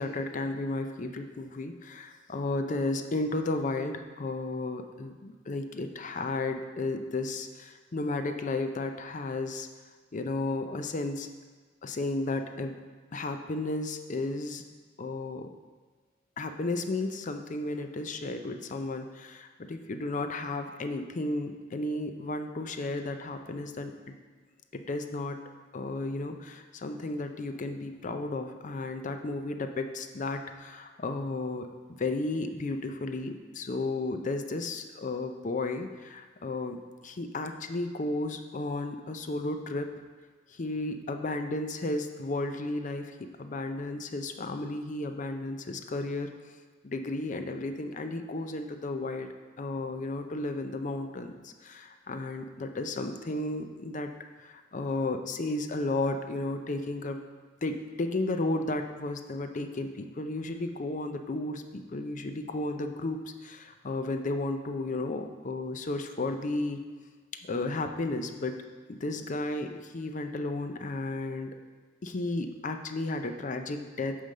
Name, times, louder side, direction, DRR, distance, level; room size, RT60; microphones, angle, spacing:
voice 1, 0.0-9.7 10.1-11.3 11.8-12.7 13.1-14.6 15.0-15.5 16.4-24.1 24.7-25.4 25.7-31.7 32.0-39.9 40.5-46.3 46.8-49.3 49.6-54.1 54.4-57.2 57.6-66.8 67.4-68.6 68.9-71.5 72.0-74.2, left 2 dB, 40° left, 7 dB, 0.5 m, -33 dB
8.9 x 3.4 x 6.5 m, 1.4 s
head